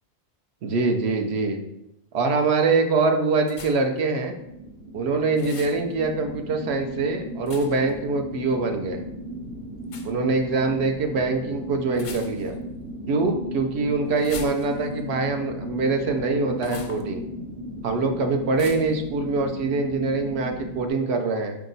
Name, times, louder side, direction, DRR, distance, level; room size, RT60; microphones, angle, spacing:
voice 1, 0.6-1.6 2.1-4.3 4.9-9.0 10.0-12.5 13.1-17.2 17.8-21.6, right 3 dB, 80° right, 4 dB, 0.9 m, -24 dB
sound 1, 3.5-4.0 5.3-5.8 7.5-7.9 9.8-10.1 11.9-12.6 14.2-15.0 16.6-17.0 18.6-19.0, left 4 dB, 55° left, 0.4 m, -41 dB
sound 2, 4.3-20.9, equal, 45° right, 1.3 m, -36 dB
4.4 x 2.9 x 3.9 m, 0.84 s
omnidirectional pair, 1.1 m